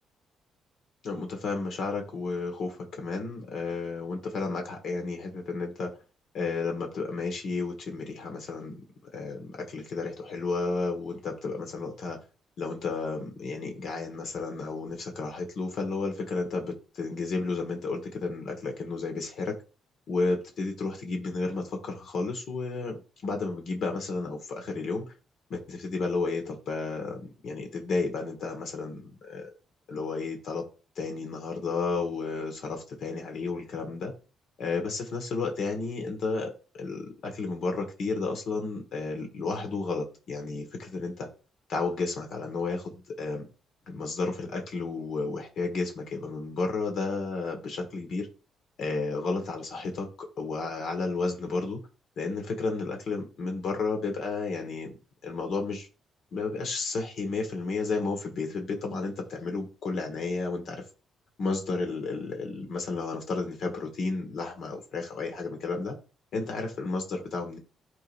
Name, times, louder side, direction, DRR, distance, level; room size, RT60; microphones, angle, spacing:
voice 1, 1.0-5.9 6.3-8.8 9.1-12.2 12.6-19.5 20.1-25.1 25.5-29.5 29.9-30.6 31.0-34.1 34.6-41.3 41.7-43.5 43.9-48.3 48.8-51.8 52.2-54.9 55.2-55.9 56.3-60.8 61.4-66.0 66.3-67.6, left 3 dB, 65° left, 1.7 m, -32 dB
10.0 x 3.9 x 2.6 m
cardioid pair, 90°, 0 cm